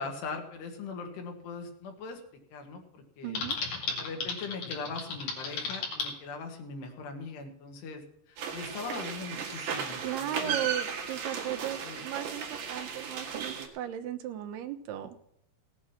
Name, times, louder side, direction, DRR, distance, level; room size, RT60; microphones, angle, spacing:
voice 1, 0.0-2.2 2.5-3.4 4.0-10.7 11.8-12.1, left 4 dB, 75° left, 4 dB, 3.9 m, -40 dB
voice 2, 3.2-3.6 10.0-15.1, right 11 dB, 75° right, 8 dB, 2.9 m, -36 dB
Typing, 3.3-6.1, left 5 dB, 55° left, 3.7 m, -34 dB
sound 1, 8.4-13.7, right 7 dB, 60° right, 3.1 m, -35 dB
17.0 x 8.7 x 5.8 m, 0.75 s
omnidirectional pair, 4.9 m